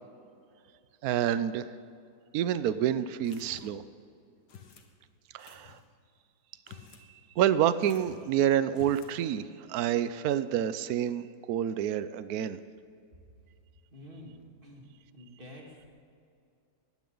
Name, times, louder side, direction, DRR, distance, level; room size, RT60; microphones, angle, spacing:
voice 1, 1.0-1.6 2.3-3.8 5.3-5.8 7.4-12.6, right 10 dB, 70° right, 14 dB, 1.1 m, -28 dB
sound 1, 3.2-3.9 4.5-4.9 5.4-5.8 6.5-7.1 7.4-7.5 7.8-8.3 8.7-9.2, left 7 dB, 80° left, 1.9 m, -51 dB
voice 2, 13.9-14.9 15.1-15.9, left 1 dB, 30° right, -1 dB, 2.5 m, -48 dB
19.5 x 14.5 x 3.9 m, 2.4 s
omnidirectional pair, 1.8 m